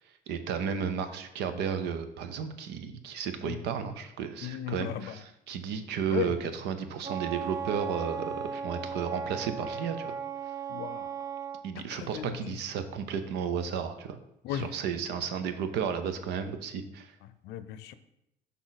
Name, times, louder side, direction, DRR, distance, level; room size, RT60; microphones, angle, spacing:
voice 1, 0.3-10.2 11.6-14.2 14.5-17.1, right 7 dB, 85° right, 9 dB, 0.7 m, -33 dB
voice 2, 4.4-5.2 6.1-6.3 10.7-11.1 11.9-12.5 14.4-14.7 17.4-17.9, left 11 dB, 80° left, 13 dB, 0.5 m, -35 dB
Wind instrument woodwind instrument, 7.0-11.6, right 6 dB, 20° right, 0.4 m, -36 dB
6.2 x 5.5 x 4.0 m, 0.81 s
cardioid pair, 110°, 17 cm